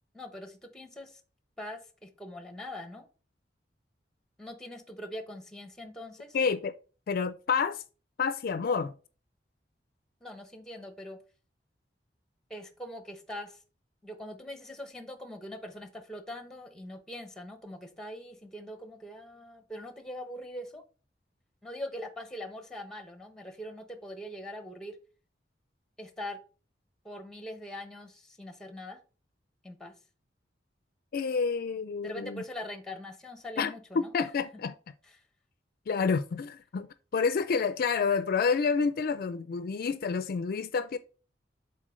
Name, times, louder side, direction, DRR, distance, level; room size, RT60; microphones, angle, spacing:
voice 1, 0.1-1.2 1.6-3.1 4.4-6.4 10.2-11.2 12.5-13.6 14.0-20.8 21.6-25.0 26.0-26.4 27.0-29.0 29.6-29.9 32.0-34.1, left 1 dB, 5° left, 0.9 m, -42 dB
voice 2, 6.3-6.7 7.1-7.8 8.2-8.9 31.1-32.4 33.6-34.7 35.9-41.0, left 5 dB, 55° left, 0.4 m, -29 dB
7.4 x 4.3 x 3.2 m
head